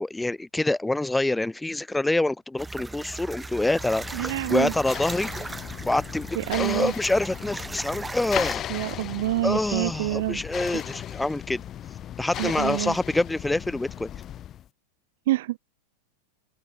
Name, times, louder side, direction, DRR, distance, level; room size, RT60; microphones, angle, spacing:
voice 1, 0.0-5.3 5.8-6.3 6.6-8.6 9.4-11.6 12.2-14.1, left 2 dB, 5° left, 0.4 m, -26 dB
sound 1, 2.6-8.5, right 3 dB, 10° right, 5.8 m, -38 dB
sound 2, 3.2-14.7, left 11 dB, 30° left, 7.9 m, -37 dB
voice 2, 4.1-4.7 6.3-6.9 8.7-10.4 10.7-10.8 12.4-13.0 15.3-15.6, right 16 dB, 55° right, 2.0 m, -27 dB
figure-of-eight pair, 90°, 0 cm